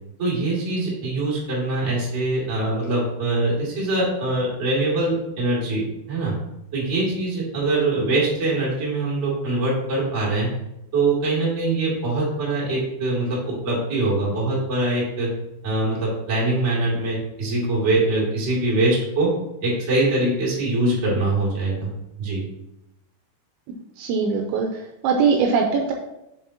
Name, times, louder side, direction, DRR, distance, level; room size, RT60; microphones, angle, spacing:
voice 1, 0.2-5.8 6.1-6.3 6.7-10.5 10.9-15.3 15.6-19.3 19.6-21.9 22.2-22.4, right 2 dB, 25° right, -6 dB, 1.7 m, -23 dB
voice 2, 24.0-24.7 25.0-25.9, right 5 dB, 85° right, 2 dB, 2.7 m, -20 dB
7.1 x 7.1 x 2.9 m, 0.90 s
omnidirectional pair, 5.7 m